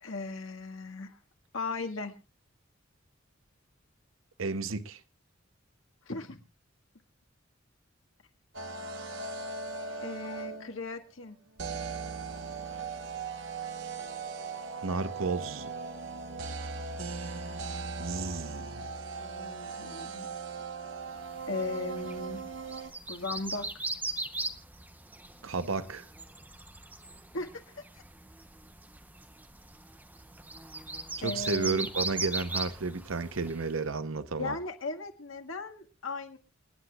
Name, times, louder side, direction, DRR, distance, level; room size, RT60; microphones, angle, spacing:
voice 1, 0.0-1.2 1.5-2.1 6.1-6.4 10.0-11.4 19.2-20.3 21.5-22.4 23.1-23.7 27.3-27.5 27.7-28.0 31.2-31.9 34.4-36.4, left 3 dB, 85° left, 1.8 m, -37 dB
voice 2, 4.4-5.0 14.8-15.7 18.0-18.9 25.4-26.1 31.2-34.6, right 4 dB, 85° right, 0.8 m, -32 dB
sound 1, 8.5-10.8 11.6-22.9, right 4 dB, 65° right, 1.2 m, -39 dB
sound 2, 21.3-33.8, right 2 dB, 10° right, 0.8 m, -39 dB
29.0 x 9.7 x 2.4 m
head